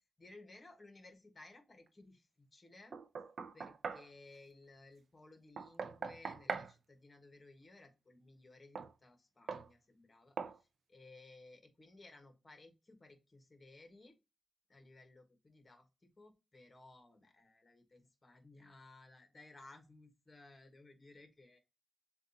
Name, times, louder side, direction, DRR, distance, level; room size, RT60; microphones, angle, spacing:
voice 1, 0.2-3.0 3.5-14.2 14.7-21.6, left 2 dB, 30° left, 5 dB, 1.3 m, -59 dB
Knock, 2.9-4.1 5.6-6.7 8.7-8.9 9.5-9.7 10.4-10.6, right 5 dB, 65° right, 0.4 m, -41 dB
7.2 x 2.4 x 2.7 m, 0.26 s
cardioid pair, 105°, 0 cm